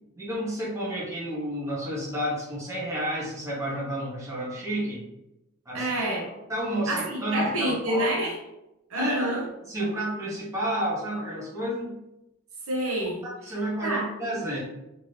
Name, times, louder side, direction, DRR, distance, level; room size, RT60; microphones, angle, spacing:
voice 1, 0.2-5.0 5.7-5.9 6.5-8.1 9.0-9.3 9.7-11.9 13.4-14.6, right 1 dB, 15° right, -6 dB, 0.8 m, -30 dB
voice 2, 5.7-6.3 6.9-8.4 8.9-9.5 12.7-13.3 13.8-14.1, right 1 dB, 80° right, -1 dB, 0.8 m, -27 dB
2.8 x 2.6 x 3.2 m, 0.91 s
head